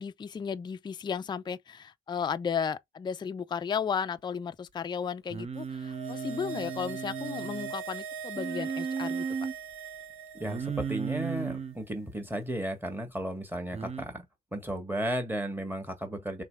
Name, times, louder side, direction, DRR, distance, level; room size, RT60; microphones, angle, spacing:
voice 1, 0.0-9.3, left 7 dB, 20° left, 0.4 m, -34 dB
Singing, 5.3-7.7 8.4-9.5 10.4-11.8 13.7-14.0, right 6 dB, 35° right, 0.7 m, -35 dB
sound 1, 5.6-11.1 11.4-11.5, right 6 dB, 85° right, 1.2 m, -41 dB
voice 2, 10.3-14.2 14.5-16.4, right 1 dB, 10° right, 1.6 m, -34 dB
3.3 x 3.2 x 4.7 m
cardioid pair, 90°, 20 cm